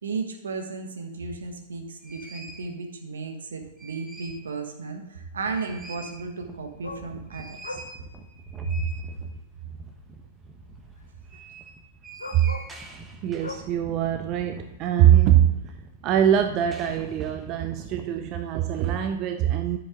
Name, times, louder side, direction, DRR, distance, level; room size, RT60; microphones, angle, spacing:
voice 1, 0.0-7.8 8.6-8.9, right 4 dB, 75° right, 4 dB, 1.4 m, -34 dB
sound 1, 1.4-1.5 2.0-2.7 3.5-4.5 4.9-5.0 5.3-19.2, right 2 dB, 15° right, 1.2 m, -45 dB
sound 2, 4.0-4.1 6.8-7.1 7.6-7.9 9.1-9.2 11.0-11.1 12.2-12.8 13.4-13.7 15.8-15.9, left 2 dB, 85° left, 0.9 m, -38 dB
voice 2, 13.2-15.6 16.0-19.8, right 11 dB, 40° right, 7 dB, 0.6 m, -22 dB
10.5 x 7.0 x 3.8 m, 1.0 s
figure-of-eight pair, 105°, 0 cm